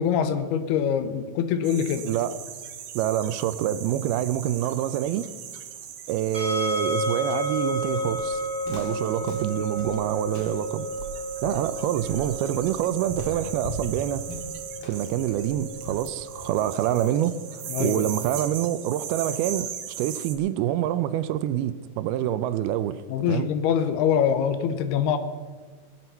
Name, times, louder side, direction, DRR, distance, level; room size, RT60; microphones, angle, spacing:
voice 1, 0.0-2.1 17.7-18.2 23.1-25.2, left 8 dB, 80° left, 2.8 m, -24 dB
sound 1, 1.6-20.4, right 9 dB, 65° right, 2.2 m, -39 dB
voice 2, 2.0-2.4 3.0-5.3 6.1-8.4 8.7-10.9 11.4-14.3 14.8-23.0 23.3-23.5, right 11 dB, 80° right, 2.4 m, -26 dB
sound 2, 6.3-19.3, right 1 dB, 20° right, 3.6 m, -33 dB
Walk footsteps, 7.5-16.8, left 1 dB, 65° left, 3.6 m, -40 dB
21.5 x 7.9 x 5.6 m
omnidirectional pair, 4.6 m